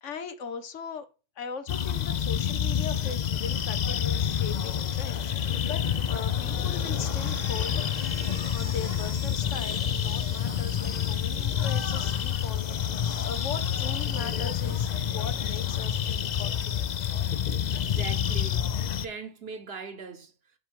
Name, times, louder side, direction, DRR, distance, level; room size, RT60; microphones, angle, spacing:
voice 1, 0.0-1.1 1.4-7.8 8.5-17.1, left 6 dB, 75° left, 1.2 m, -40 dB
sound 1, 1.7-19.1, left 9 dB, 55° left, 0.5 m, -28 dB
sound 2, 6.3-16.4 16.7-17.1, right 7 dB, 75° right, 1.2 m, -49 dB
voice 2, 17.7-18.7 19.0-20.3, right 4 dB, 55° right, 1.2 m, -40 dB
5.9 x 5.3 x 5.3 m
omnidirectional pair, 1.3 m